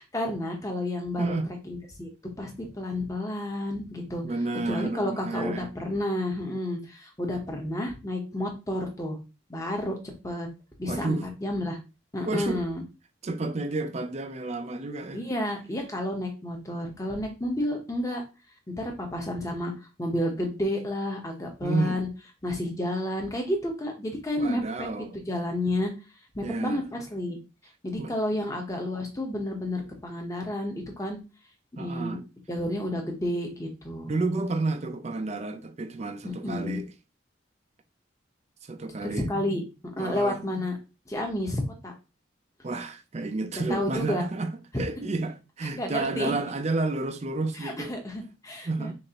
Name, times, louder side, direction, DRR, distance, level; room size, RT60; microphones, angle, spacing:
voice 1, 0.1-1.4 1.6-2.1 2.4-4.2 4.7-9.2 9.5-10.0 10.2-10.5 10.8-11.8 12.1-12.8 15.1-18.2 18.7-19.7 20.0-22.1 22.4-24.9 25.1-25.9 26.3-27.4 27.8-31.2 31.8-32.2 32.5-34.2 36.2-36.8 39.0-39.6 40.0-40.8 41.1-41.9 43.5-44.2 45.8-46.3 47.6-48.9, left 1 dB, 15° left, 0.9 m, -31 dB
voice 2, 1.2-1.5 4.2-5.7 10.9-11.2 12.3-12.6 13.2-15.2 21.6-22.0 24.4-25.2 26.4-26.8 28.0-28.1 31.8-32.2 34.1-36.9 38.7-39.6 40.0-40.4 42.6-44.5 44.8-47.9 48.7-48.9, right 3 dB, 35° right, 0.5 m, -31 dB
6.3 x 2.6 x 2.9 m
head